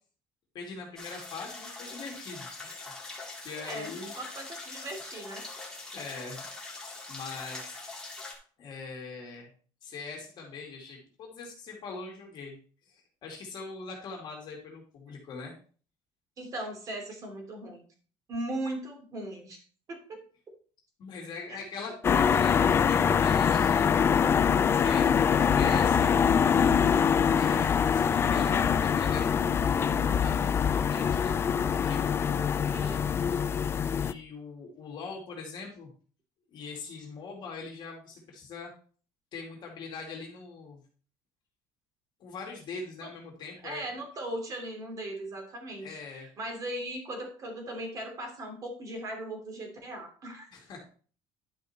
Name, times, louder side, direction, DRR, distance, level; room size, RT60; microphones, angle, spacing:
voice 1, 0.5-2.9 3.4-4.1 5.7-6.5 7.1-7.8 8.6-9.5 9.8-12.6 12.9-15.5 21.0-23.9 24.7-26.2 27.3-31.4 31.8-32.7 34.0-35.9 36.5-38.7 39.3-40.8 42.2-43.9 45.8-46.3 50.5-50.8, left 4 dB, 45° left, -1 dB, 2.4 m, -42 dB
sound 1, 1.0-8.3, left 3 dB, 5° left, 2.1 m, -43 dB
voice 2, 3.6-5.4 16.4-17.8 18.3-19.6 19.9-20.2 21.5-21.6 22.1-22.2 32.7-33.1 43.0-43.1 43.6-50.5, right 1 dB, 30° right, 3 dB, 2.8 m, -38 dB
sound 2, 22.0-34.1, left 7 dB, 25° left, 0.3 m, -24 dB
11.0 x 5.1 x 4.3 m, 0.42 s
cardioid pair, 160°, 11 cm